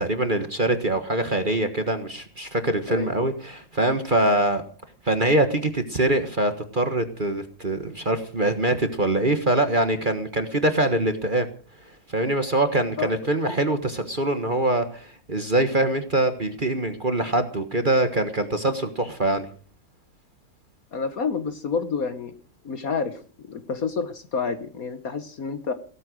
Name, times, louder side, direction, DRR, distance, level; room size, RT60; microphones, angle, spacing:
voice 1, 0.0-4.6 5.0-11.5 12.1-19.5, right 1 dB, 30° right, 8 dB, 1.4 m, -23 dB
voice 2, 20.9-22.3 22.6-25.7, left 5 dB, 50° left, 11 dB, 1.4 m, -29 dB
16.5 x 13.5 x 6.3 m, 0.41 s
omnidirectional pair, 2.1 m